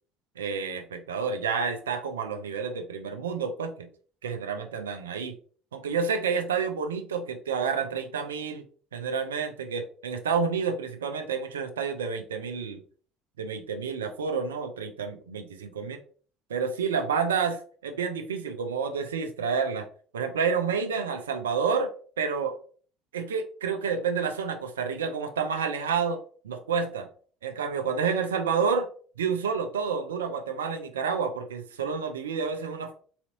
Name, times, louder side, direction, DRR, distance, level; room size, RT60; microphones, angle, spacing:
voice 1, 0.4-3.9 4.2-5.3 5.7-8.7 8.9-12.8 13.4-16.0 16.5-17.6 17.8-19.9 20.1-22.6 23.1-27.1 27.4-28.9 29.2-32.9, right 5 dB, 80° right, 6 dB, 0.4 m, -29 dB
4.0 x 2.9 x 2.8 m, 0.43 s
figure-of-eight pair, 60°, 0 cm